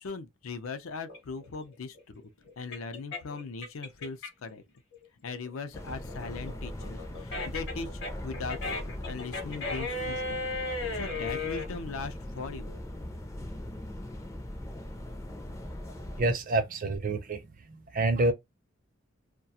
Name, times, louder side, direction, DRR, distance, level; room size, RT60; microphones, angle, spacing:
voice 1, 0.0-2.2 2.6-4.6 5.2-10.5 10.9-12.8, left 4 dB, 80° left, 0.5 m, -39 dB
sound 1, 1.1-4.5 4.9-11.7, left 3 dB, 55° left, 0.8 m, -36 dB
sound 2, 5.7-16.2, left 1 dB, 15° left, 0.4 m, -40 dB
voice 2, 16.2-17.4 17.7-18.3, right 2 dB, 40° right, 0.5 m, -27 dB
2.3 x 2.2 x 2.7 m
head